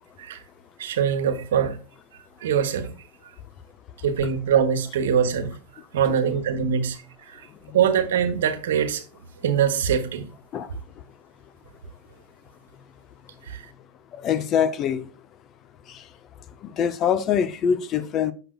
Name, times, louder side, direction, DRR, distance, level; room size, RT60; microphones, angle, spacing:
voice 1, 0.8-1.8 2.4-2.9 4.0-5.5 5.9-7.5 7.7-9.0 9.4-10.2 13.4-13.6, right 8 dB, 75° right, 1.1 m, -23 dB
voice 2, 14.2-15.1 15.9-16.0 16.6-18.3, left 8 dB, 40° left, 0.7 m, -24 dB
6.6 x 6.0 x 2.4 m
hypercardioid pair, 105°, 0 cm